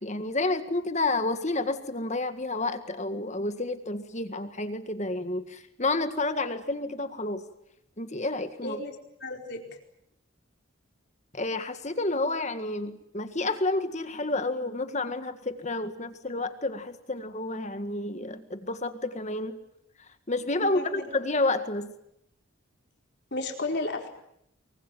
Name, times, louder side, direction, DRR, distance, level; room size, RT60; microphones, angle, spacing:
voice 1, 0.0-7.4 8.0-8.8 11.3-19.6 20.0-21.9, left 2 dB, 30° left, 9 dB, 1.8 m, -30 dB
voice 2, 8.6-8.9 9.2-9.8 20.6-21.0 23.3-24.1, left 2 dB, 50° left, 3 dB, 4.6 m, -33 dB
24.5 x 23.5 x 9.2 m, 0.77 s
head